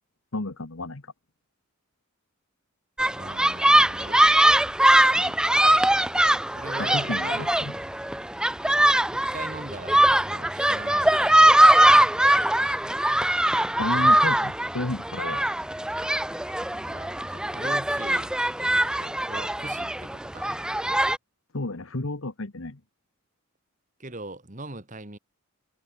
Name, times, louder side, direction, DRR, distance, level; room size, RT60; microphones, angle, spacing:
voice 1, 0.3-1.1 5.1-5.3 6.8-7.8 13.8-15.4 21.5-22.8, left 2 dB, 65° left, 1.4 m, -32 dB
sound 1, 3.0-21.2, right 1 dB, 5° right, 0.4 m, -21 dB
voice 2, 3.2-4.2 6.5-7.5 9.1-12.0 16.9-20.6 24.0-25.2, right 2 dB, 35° right, 2.2 m, -41 dB
head